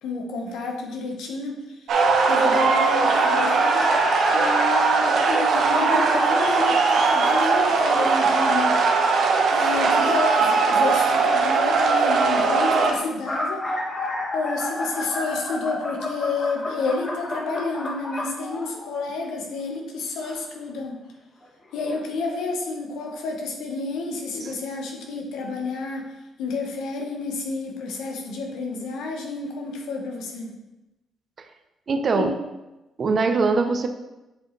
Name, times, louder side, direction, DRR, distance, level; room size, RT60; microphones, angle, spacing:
voice 1, 0.0-3.9 4.3-8.8 9.5-13.8 14.3-21.0 21.7-30.5 32.1-32.3, left 3 dB, 85° left, 1 dB, 1.1 m, -30 dB
sound 1, 1.9-12.9, right 4 dB, 70° right, 1.0 m, -20 dB
sound 2, 3.1-8.1 13.0-19.1 20.2-20.4 21.4-21.5 21.9-22.0, left 1 dB, 25° left, 1.2 m, -31 dB
voice 2, 31.9-32.3 33.0-33.9, right 4 dB, 45° right, 6 dB, 0.6 m, -22 dB
7.5 x 4.8 x 3.2 m, 1.0 s
cardioid pair, 90°, 0 cm